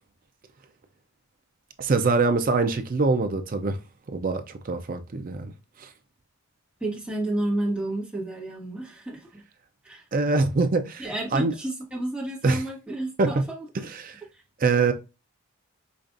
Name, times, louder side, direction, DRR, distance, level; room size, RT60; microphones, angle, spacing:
voice 1, 1.8-3.8 4.1-5.5 5.8-5.9 10.1-11.5 12.4-12.6 13.2-13.3 13.9-14.2 14.6-14.9, right 3 dB, 40° right, 0.4 m, -24 dB
voice 2, 6.8-9.4 9.8-10.0 11.0-13.9, right 1 dB, 5° right, 1.2 m, -31 dB
5.1 x 2.4 x 2.4 m
head